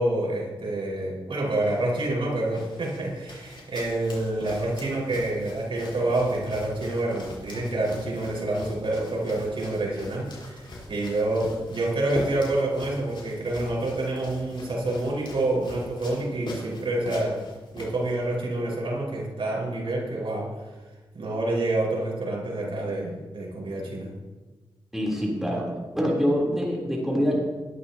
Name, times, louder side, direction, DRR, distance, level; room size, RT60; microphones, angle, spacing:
voice 1, 0.0-17.4 17.7-20.5 21.1-24.1, right 2 dB, 70° right, -3 dB, 5.3 m, -27 dB
sound 1, 1.4-18.4, left 2 dB, 60° left, 4.4 m, -42 dB
voice 2, 24.9-25.6 25.9-27.4, equal, 5° right, -4 dB, 3.7 m, -25 dB
19.5 x 12.0 x 3.0 m, 1.2 s
wide cardioid pair, 115°, 9 cm